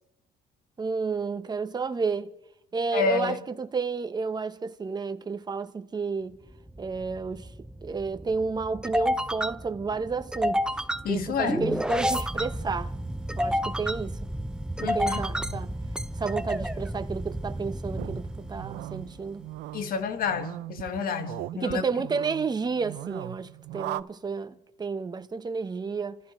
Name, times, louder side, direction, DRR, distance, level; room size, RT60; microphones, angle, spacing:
voice 1, 0.8-2.3 2.7-6.4 6.8-7.5 7.8-12.9 13.3-14.2 14.8-15.8 16.1-19.5 21.5-26.2, right 4 dB, 25° right, 1.0 m, -31 dB
voice 2, 2.9-3.4 11.0-11.8 14.8-15.3 15.5-15.6 19.7-21.8, left 5 dB, 60° left, 1.7 m, -29 dB
sound 1, 6.5-19.2, equal, 5° right, 0.6 m, -31 dB
sound 2, 18.0-24.0, right 16 dB, 80° right, 0.6 m, -39 dB
29.5 x 14.5 x 3.2 m
cardioid pair, 110°, 17 cm